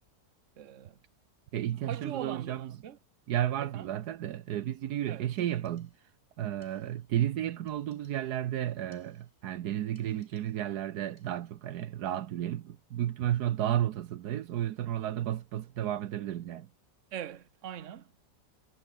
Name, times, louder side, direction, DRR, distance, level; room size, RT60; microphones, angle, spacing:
voice 1, 0.6-1.0 1.9-3.0 3.6-3.9 5.1-5.3 17.1-18.1, right 10 dB, 50° right, 1.3 m, -41 dB
voice 2, 1.5-2.7 3.3-5.9 6.4-16.7, right 12 dB, 75° right, 1.3 m, -32 dB
sound 1, 5.4-6.2 6.6-7.2 7.7-8.5 8.9-9.6 9.9-10.8 11.2-11.7, left 2 dB, 50° left, 6.3 m, -71 dB
omnidirectional pair, 1.7 m